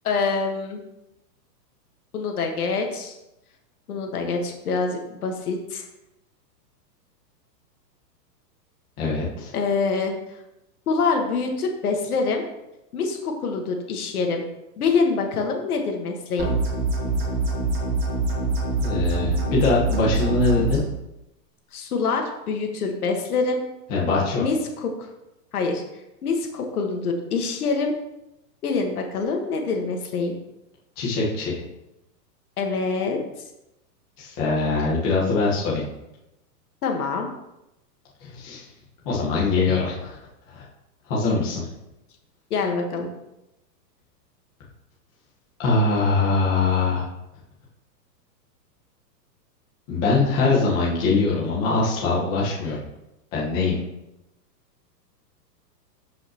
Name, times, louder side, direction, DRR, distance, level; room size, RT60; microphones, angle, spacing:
voice 1, 0.0-0.8 2.1-3.1 3.9-5.9 9.5-10.1 10.9-12.4 12.9-14.4 14.8-16.5 21.7-23.6 24.4-25.1 25.5-25.8 26.2-27.9 28.6-30.4 32.6-33.2 36.8-37.3 42.5-43.1, left 4 dB, 60° left, 3 dB, 1.6 m, -25 dB
voice 2, 9.0-9.5 18.8-20.8 23.9-24.4 31.0-31.6 34.2-35.8 38.2-38.6 39.0-40.2 40.5-40.6 41.1-41.7 45.6-47.0 49.9-52.8 53.3-53.8, left 3 dB, 20° left, -5 dB, 1.4 m, -22 dB
sound 1, 16.4-20.8, right 2 dB, 30° right, 2.2 m, -24 dB
13.0 x 5.5 x 3.0 m, 0.91 s
hypercardioid pair, 175°, 50 cm